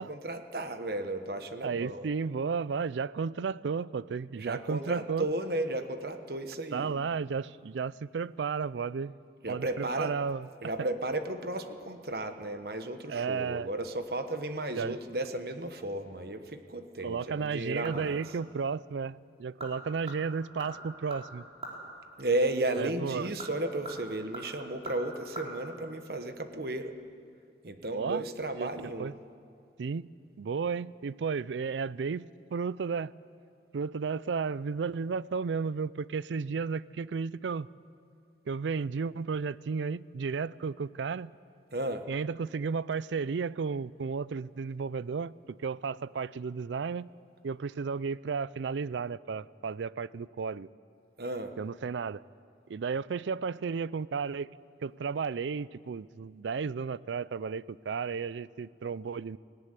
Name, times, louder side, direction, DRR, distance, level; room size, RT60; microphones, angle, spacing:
voice 1, 0.0-2.1 4.3-7.0 9.4-10.1 10.6-18.2 22.2-26.9 27.6-29.1 41.7-42.1 51.2-51.5, right 1 dB, 60° right, 8 dB, 1.2 m, -34 dB
voice 2, 1.6-5.3 6.7-9.1 9.5-10.5 13.1-13.7 14.7-15.0 17.0-21.5 22.8-23.3 27.9-28.2 28.5-28.7 29.0-29.1 29.8-30.1 30.4-33.1 33.7-37.7 38.5-41.3 42.1-47.1 47.4-50.7 51.6-52.2 52.7-54.5 54.8-59.4, right 5 dB, 90° right, 20 dB, 0.4 m, -33 dB
sound 1, 17.3-18.3 18.6-18.7 19.3-19.7 20.0-21.8 23.1-25.5 25.7-25.8, right 2 dB, 35° right, 3.7 m, -43 dB
17.5 x 17.5 x 9.8 m, 2.3 s
head